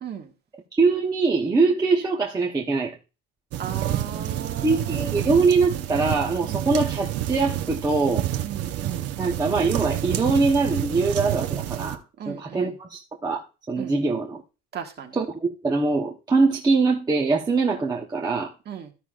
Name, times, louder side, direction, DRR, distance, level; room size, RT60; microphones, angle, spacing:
voice 1, 0.0-0.3 3.6-5.4 6.4-6.7 8.4-9.4 12.2-12.7 13.8-13.9 14.7-15.1 18.6-18.9, right 8 dB, 30° right, 1.6 m, -37 dB
voice 2, 0.7-3.0 4.6-8.3 9.2-12.0 12.3-14.4 15.1-18.5, right 4 dB, 15° right, 0.9 m, -23 dB
sound 1, 3.5-12.0, right 12 dB, 50° right, 0.9 m, -29 dB
14.5 x 6.0 x 2.4 m
cardioid pair, 170°, 32 cm